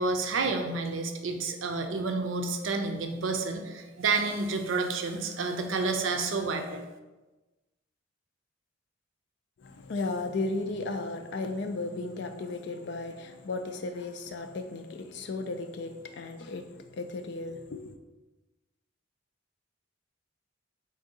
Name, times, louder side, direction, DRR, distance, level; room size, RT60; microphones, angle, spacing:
voice 1, 0.0-6.8, right 3 dB, 80° right, 6 dB, 0.5 m, -30 dB
voice 2, 9.6-17.9, left 3 dB, 60° left, 7 dB, 0.4 m, -35 dB
3.8 x 2.6 x 3.7 m, 1.1 s
head